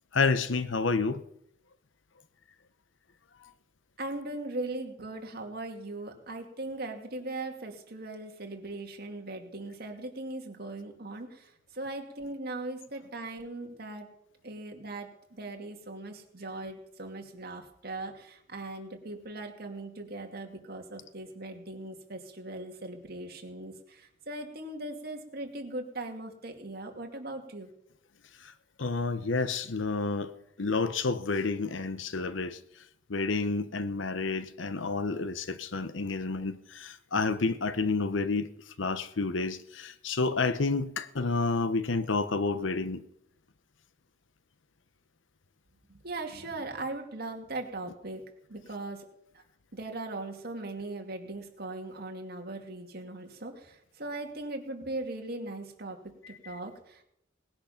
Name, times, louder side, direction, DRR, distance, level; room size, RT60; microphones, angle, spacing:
voice 1, 0.1-1.2 28.8-30.3 30.6-32.6 33.1-38.5 38.8-43.0, left 3 dB, 80° left, 0.9 m, -29 dB
voice 2, 4.0-14.1 14.4-27.7 46.0-48.2 48.5-49.0 49.3-49.4 49.7-57.0, right 2 dB, 55° right, 2.3 m, -39 dB
19.5 x 10.5 x 5.8 m
head